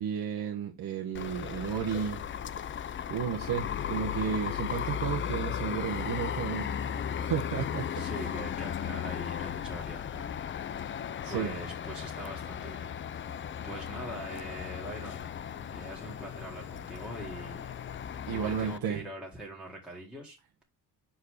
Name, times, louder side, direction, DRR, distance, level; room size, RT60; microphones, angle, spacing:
voice 1, 0.0-2.2 3.1-6.8 7.2-8.1 11.2-11.5 18.3-19.0, right 8 dB, 60° right, 1.1 m, -33 dB
sound 1, 1.1-18.8, left 8 dB, 30° left, 0.4 m, -36 dB
voice 2, 7.9-10.5 11.3-12.9 13.6-15.3 15.7-17.7 18.3-20.6, right 1 dB, ahead, 1.9 m, -43 dB
5.7 x 4.8 x 5.0 m
cardioid pair, 150°, 40 cm